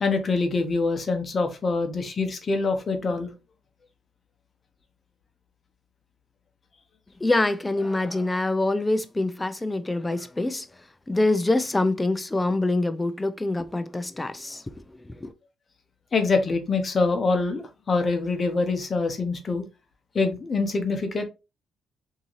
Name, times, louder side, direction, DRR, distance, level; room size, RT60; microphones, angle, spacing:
voice 1, 0.0-3.3 16.1-19.6 20.1-21.2, left 3 dB, 40° left, 0.8 m, -25 dB
voice 2, 7.2-10.7 11.1-14.6 15.2-15.3, left 2 dB, 15° left, 0.4 m, -25 dB
3.6 x 2.8 x 3.0 m
cardioid pair, 90°, 0 cm